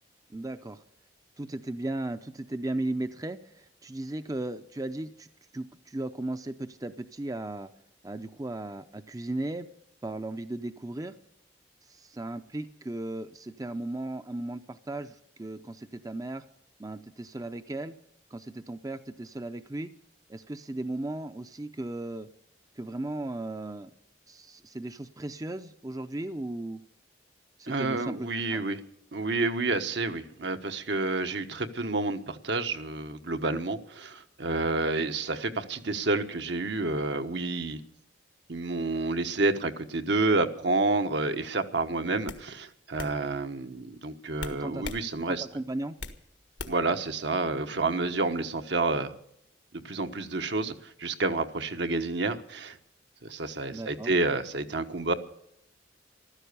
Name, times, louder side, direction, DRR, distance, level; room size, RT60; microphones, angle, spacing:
voice 1, 0.3-0.8 1.4-5.3 5.5-7.7 8.0-9.7 10.0-11.2 11.9-16.4 16.8-18.0 18.3-19.9 20.3-22.3 22.8-23.9 24.3-26.8 27.6-28.6 44.6-44.9 45.3-46.0 53.7-54.1, right 2 dB, 20° right, 10 dB, 0.5 m, -36 dB
voice 2, 27.7-28.8 29.1-37.8 38.5-45.4 46.7-49.1 49.8-52.8 53.2-55.1, right 3 dB, 70° right, 7 dB, 1.2 m, -29 dB
sound 1, 41.5-41.7 42.3-42.4 43.0-43.1 44.4-45.0 45.4-46.2 46.6-46.9, left 3 dB, 80° left, 1.5 m, -39 dB
15.0 x 13.0 x 6.8 m, 0.74 s
head